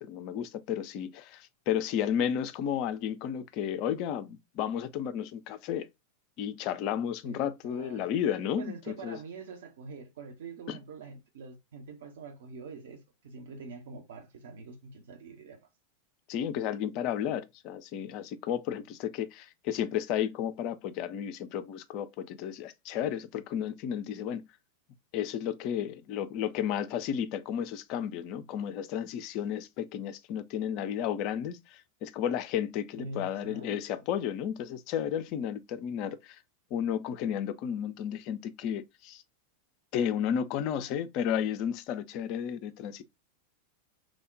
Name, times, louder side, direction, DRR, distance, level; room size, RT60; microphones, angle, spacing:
voice 1, 0.0-5.9 6.4-9.2 10.7-10.8 16.3-24.5 25.1-36.4 36.7-39.2 39.9-43.0, left 9 dB, 40° left, 0.4 m, -33 dB
voice 2, 7.2-8.0 8.6-15.6 33.0-33.8, right 4 dB, 60° right, 0.6 m, -45 dB
3.2 x 2.1 x 3.7 m
figure-of-eight pair, 90°, 0 cm